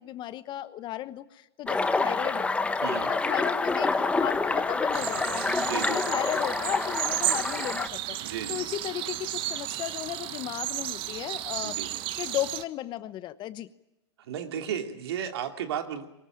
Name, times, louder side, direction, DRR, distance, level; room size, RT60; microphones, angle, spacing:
voice 1, 0.0-2.5 3.0-5.5 5.8-11.8 12.2-13.7, left 13 dB, 35° left, 14 dB, 1.1 m, -35 dB
sound 1, 1.7-7.9, left 3 dB, 10° left, 1.1 m, -27 dB
voice 2, 2.8-3.2 5.6-6.0 8.2-8.7 11.6-12.0 14.2-16.1, right 9 dB, 65° right, 5 dB, 2.8 m, -34 dB
sound 2, 4.9-12.6, right 14 dB, 40° right, 1.1 m, -33 dB
23.5 x 19.5 x 8.9 m, 0.94 s
hypercardioid pair, 110°, 14 cm